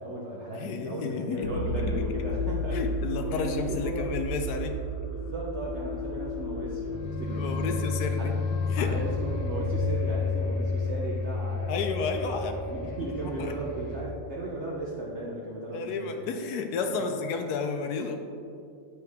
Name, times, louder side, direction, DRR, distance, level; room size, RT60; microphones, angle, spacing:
voice 1, 0.0-2.8 3.2-4.1 5.0-7.8 8.2-8.3 8.8-11.9 12.7-16.0 16.9-17.1, right 2 dB, 60° right, -4 dB, 0.7 m, -36 dB
voice 2, 0.6-1.6 1.9-2.0 2.7-4.8 7.3-8.3 8.7-8.9 11.7-12.6 13.4-13.5 15.7-18.2, left 5 dB, 75° left, 5 dB, 0.9 m, -32 dB
sound 1, 1.4-14.0, left 3 dB, 90° left, 1.5 m, -31 dB
8.4 x 4.6 x 3.5 m, 2.5 s
omnidirectional pair, 2.1 m